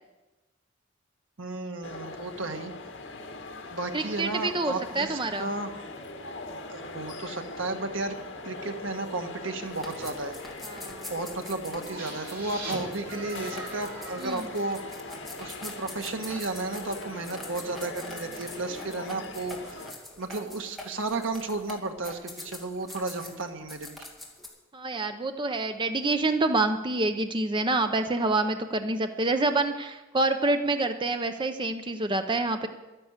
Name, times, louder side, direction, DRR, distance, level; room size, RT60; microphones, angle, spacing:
voice 1, 1.4-2.7 3.7-5.8 6.7-8.2 8.4-10.3 11.1-14.8 15.4-19.9 20.2-24.1, right 2 dB, 80° right, 5 dB, 1.4 m, -33 dB
sound 1, 1.8-19.9, left 2 dB, 70° left, 1.9 m, -41 dB
voice 2, 3.9-5.5 10.6-11.1 14.2-14.5 24.7-32.7, right 2 dB, 25° right, 7 dB, 0.7 m, -27 dB
sound 2, 9.6-24.5, left 1 dB, ahead, 2.5 m, -45 dB
sound 3, 12.0-15.7, right 2 dB, 55° right, 5.3 m, -42 dB
12.0 x 10.5 x 8.1 m, 1.1 s
head